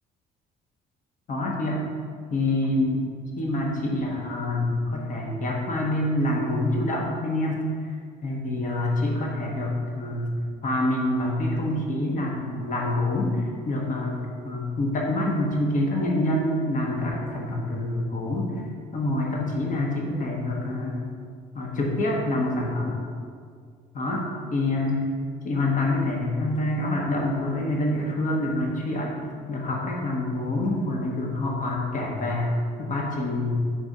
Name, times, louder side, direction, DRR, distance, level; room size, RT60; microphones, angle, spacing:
voice 1, 1.3-1.8 2.3-3.1 3.4-7.6 8.2-10.3 10.6-18.5 18.9-21.1 21.5-23.0 23.9-24.2 24.5-25.0 25.4-29.2 29.5-32.5 32.8-33.5, left 1 dB, 50° left, -1 dB, 1.2 m, -26 dB
5.2 x 4.0 x 4.9 m, 2.1 s
cardioid pair, 110°, 17 cm